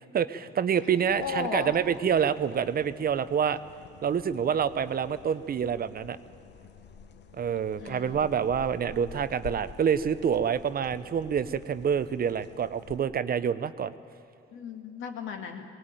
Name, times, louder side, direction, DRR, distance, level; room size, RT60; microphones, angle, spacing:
voice 1, 0.1-3.6 4.0-6.2 7.4-13.9, right 7 dB, 50° right, 13 dB, 0.8 m, -27 dB
voice 2, 1.1-1.8 7.8-8.3 14.5-15.6, left 5 dB, 80° left, 4 dB, 2.3 m, -35 dB
sound 1, 1.1-13.0, left 7 dB, 60° left, 1.1 m, -49 dB
19.0 x 18.5 x 9.2 m, 2.7 s
cardioid pair, 90°, 20 cm